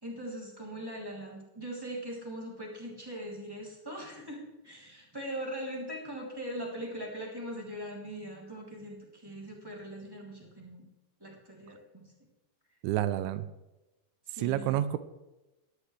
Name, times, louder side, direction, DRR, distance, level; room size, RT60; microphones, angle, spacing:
voice 1, 0.0-10.9 11.2-12.1 14.4-14.8, equal, 5° right, -3 dB, 2.0 m, -41 dB
voice 2, 12.8-13.5 14.4-15.0, right 12 dB, 85° right, 12 dB, 3.0 m, -29 dB
17.5 x 11.5 x 3.3 m, 1.0 s
omnidirectional pair, 5.3 m